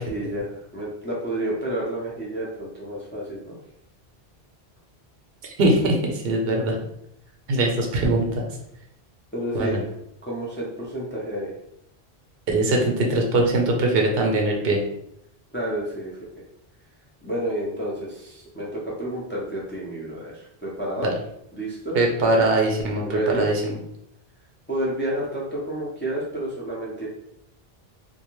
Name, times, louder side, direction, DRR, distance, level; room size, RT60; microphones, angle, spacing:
voice 1, 0.0-3.6 9.3-9.8 10.2-11.5 15.5-16.2 17.2-21.1 21.5-22.0 23.0-23.5 24.7-27.1, right 1 dB, 15° left, -5 dB, 0.4 m, -30 dB
voice 2, 5.6-6.8 7.5-8.3 9.5-9.8 12.5-14.8 21.0-21.1 21.9-23.8, right 2 dB, 70° right, 1 dB, 0.8 m, -21 dB
2.4 x 2.2 x 3.0 m, 0.75 s
omnidirectional pair, 1.0 m